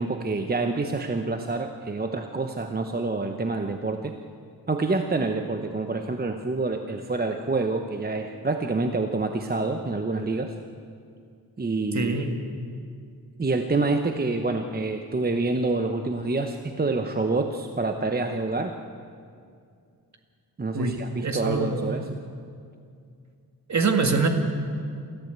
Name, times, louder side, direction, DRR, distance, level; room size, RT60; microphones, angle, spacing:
voice 1, 0.0-4.1 4.7-10.5 11.6-12.2 13.4-18.7 20.6-22.0, right 3 dB, 25° right, 5 dB, 0.9 m, -27 dB
voice 2, 11.9-12.3 20.7-21.9 23.7-24.3, right 4 dB, 45° right, 5 dB, 2.0 m, -24 dB
28.0 x 14.0 x 8.1 m, 2.3 s
wide cardioid pair, 150°, 39 cm